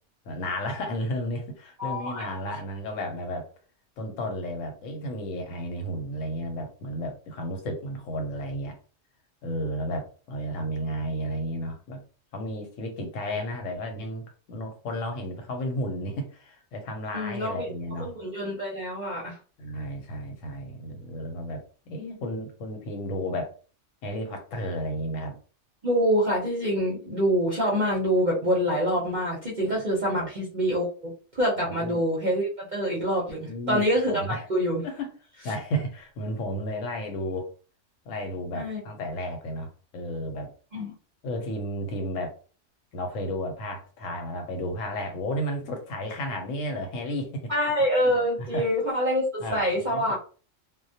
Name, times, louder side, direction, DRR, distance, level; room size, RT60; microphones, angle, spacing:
voice 1, 0.3-3.5 4.0-8.7 9.4-12.0 12.3-18.1 19.6-23.5 24.0-25.4 30.1-30.3 31.6-32.0 33.4-34.5 34.8-35.1 35.4-37.5 38.1-40.5 41.2-42.3 42.9-47.5 48.1-48.6 49.4-50.2, equal, 85° left, 4 dB, 1.0 m, -33 dB
voice 2, 1.8-2.3 17.1-17.7 18.0-19.4 25.8-34.8 38.5-38.8 40.7-40.9 47.5-50.2, equal, 45° right, -4 dB, 0.6 m, -26 dB
2.2 x 2.1 x 2.7 m, 0.38 s
omnidirectional pair, 1.3 m